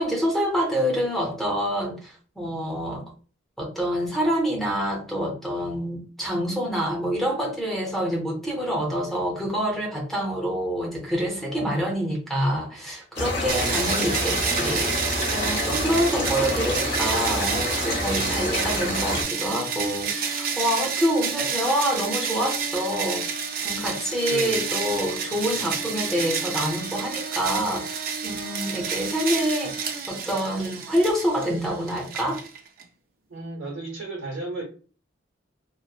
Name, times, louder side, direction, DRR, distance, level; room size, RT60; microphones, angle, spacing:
voice 1, 0.0-3.0 3.6-23.3 23.6-32.4, equal, ahead, 0.6 m, -26 dB
sound 1, 13.2-19.2, left 1 dB, 55° left, 0.9 m, -28 dB
sound 2, 13.5-32.8, right 6 dB, 45° right, 0.4 m, -30 dB
voice 2, 13.5-13.9 15.8-16.1 24.3-24.7 25.5-25.7 33.3-34.6, right 2 dB, 85° right, 0.8 m, -35 dB
2.9 x 2.0 x 2.3 m
head